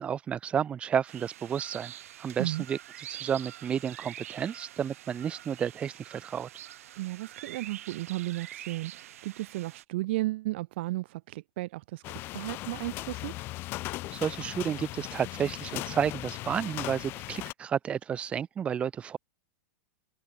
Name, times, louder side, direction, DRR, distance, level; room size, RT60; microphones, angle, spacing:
voice 1, 0.0-1.9 2.2-2.8 3.1-6.5 14.1-19.2, right 8 dB, 15° right, 1.0 m, -31 dB
sound 1, 1.1-9.8, right 12 dB, 80° right, 1.8 m, -46 dB
voice 2, 7.0-13.3, right 18 dB, 50° right, 0.7 m, -34 dB
sound 2, 12.0-17.5, left 18 dB, 30° left, 1.8 m, -38 dB
open air
supercardioid pair, 170°, 8 cm